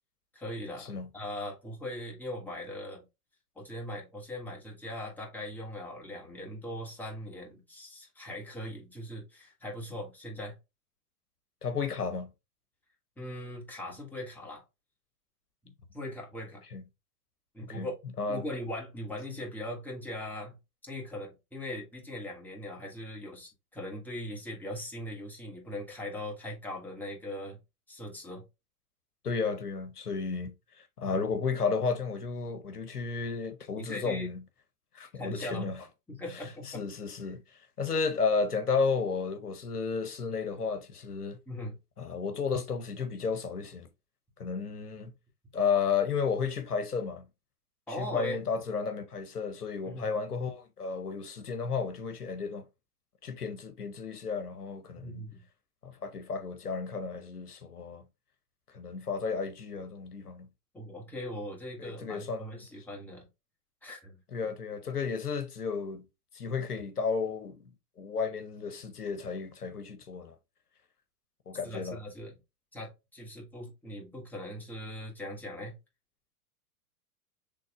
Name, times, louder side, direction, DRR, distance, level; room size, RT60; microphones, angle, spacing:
voice 1, 0.3-3.0 3.5-10.5 13.2-14.6 15.9-16.6 17.5-17.9 18.3-20.6 20.8-27.6 27.9-28.4 31.1-31.2 33.8-34.3 35.1-35.7 36.1-36.8 37.2-37.3 41.5-41.8 47.9-48.4 49.8-50.1 55.0-55.4 60.7-63.3 63.8-64.5 71.6-72.4 72.7-75.7, left 1 dB, 5° left, 1.8 m, -40 dB
voice 2, 11.6-12.3 16.7-16.8 17.6-17.9 18.2-18.4 29.2-34.4 34.9-35.8 36.3-37.4 37.8-41.4 42.0-43.9 44.4-45.1 45.5-47.2 47.9-52.6 53.2-55.2 55.8-58.0 58.7-60.5 61.8-62.6 64.3-66.0 66.3-67.6 68.0-70.3 71.5-72.0, left 5 dB, 80° left, 1.0 m, -33 dB
6.3 x 3.4 x 2.3 m
figure-of-eight pair, 100°, 45 cm